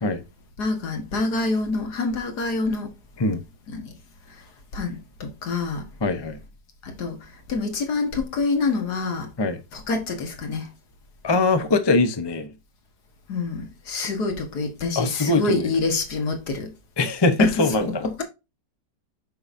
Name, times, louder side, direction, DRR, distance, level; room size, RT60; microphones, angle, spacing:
voice 1, 0.6-2.9 3.7-3.9 4.7-5.8 6.8-7.2 7.5-9.3 9.7-10.7 13.3-16.7 17.4-17.6 18.0-18.2, left 3 dB, 60° left, 2.0 m, -26 dB
voice 2, 6.0-6.4 9.4-9.6 11.2-12.5 14.9-15.7 17.0-18.1, left 3 dB, 25° left, 0.5 m, -22 dB
7.7 x 5.5 x 2.6 m
omnidirectional pair, 1.9 m